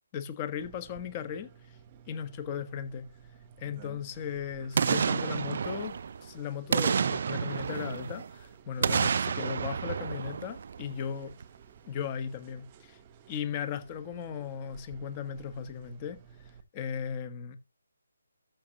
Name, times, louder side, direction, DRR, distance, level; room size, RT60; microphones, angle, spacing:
voice 1, 0.1-1.8 2.1-3.1 3.6-11.3 11.9-13.0 13.3-16.2 16.7-17.6, left 8 dB, 20° left, 1.4 m, -37 dB
sound 1, 0.6-16.6, right 8 dB, 25° right, 1.2 m, -55 dB
Boom, 4.7-6.3 6.7-8.3 8.8-11.1 11.4-11.5, right 6 dB, 50° right, 0.4 m, -30 dB
13.0 x 6.4 x 3.0 m
hypercardioid pair, 165°, 0 cm